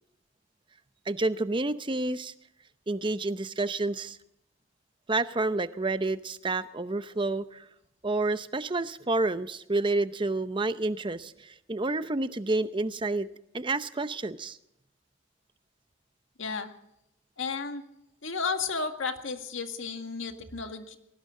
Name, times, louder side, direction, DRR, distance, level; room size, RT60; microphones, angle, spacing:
voice 1, 1.1-2.3 2.9-4.2 5.1-7.6 8.0-13.3 13.5-14.6, right 2 dB, 25° right, 13 dB, 0.7 m, -29 dB
voice 2, 16.4-16.7 17.4-17.9 18.2-21.0, left 5 dB, 75° left, 6 dB, 1.9 m, -33 dB
20.5 x 18.5 x 3.8 m, 0.81 s
head